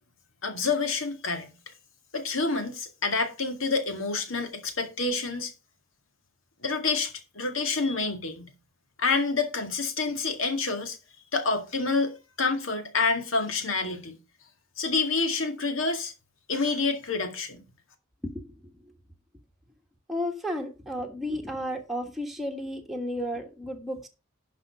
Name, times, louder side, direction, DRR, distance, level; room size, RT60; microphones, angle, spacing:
voice 1, 0.4-1.5 2.1-5.5 6.6-8.5 9.0-11.0 11.3-14.2 14.8-16.1 16.5-17.6, left 4 dB, 70° left, 2.0 m, -28 dB
voice 2, 20.1-24.1, equal, ahead, 1.4 m, -33 dB
11.0 x 5.2 x 5.0 m
head